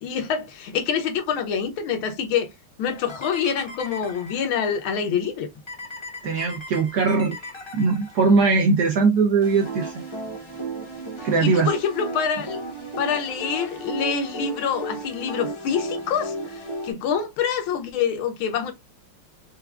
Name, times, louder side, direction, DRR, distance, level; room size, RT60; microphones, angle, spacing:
voice 1, 0.0-2.5 2.8-5.5 11.4-12.6 13.0-18.7, left 7 dB, 75° left, 1.6 m, -26 dB
sound 1, 2.9-4.8 5.7-8.5 9.4-16.9, right 1 dB, 30° left, 0.5 m, -35 dB
voice 2, 6.2-7.4 7.7-10.0 11.2-11.7, right 4 dB, 65° right, 1.0 m, -20 dB
4.7 x 2.4 x 2.2 m
omnidirectional pair, 2.3 m